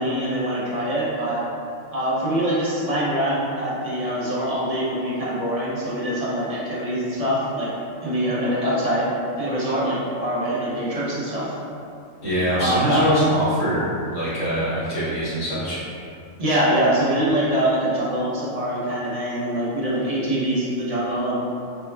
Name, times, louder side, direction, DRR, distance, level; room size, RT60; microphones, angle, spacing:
voice 1, 0.0-1.4 1.9-7.7 8.0-9.1 9.4-11.5 12.6-13.2 16.4-21.4, right 1 dB, 40° right, -8 dB, 0.6 m, -24 dB
voice 2, 12.2-13.9 14.1-15.8, equal, 70° left, -12 dB, 1.8 m, -24 dB
4.5 x 2.1 x 2.2 m, 2.6 s
omnidirectional pair, 1.4 m